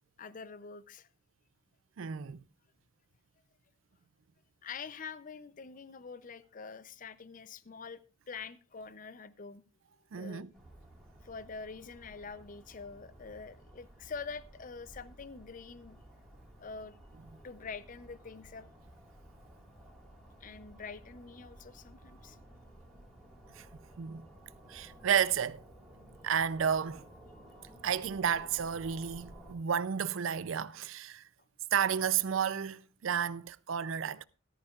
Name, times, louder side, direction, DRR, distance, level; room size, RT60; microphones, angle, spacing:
voice 1, 0.2-1.1 4.6-9.6 10.1-10.5 11.2-16.0 16.6-17.0 17.4-18.7 20.4-22.4 29.6-29.7, left 5 dB, 40° left, 0.5 m, -45 dB
voice 2, 2.0-2.4 10.1-10.5 23.5-23.7 24.0-24.3 24.7-25.6 26.2-27.0 27.8-31.3 31.7-34.2, right 8 dB, 80° right, 0.5 m, -32 dB
sound 1, 10.5-29.5, right 1 dB, ahead, 4.1 m, -55 dB
14.0 x 13.5 x 2.4 m
head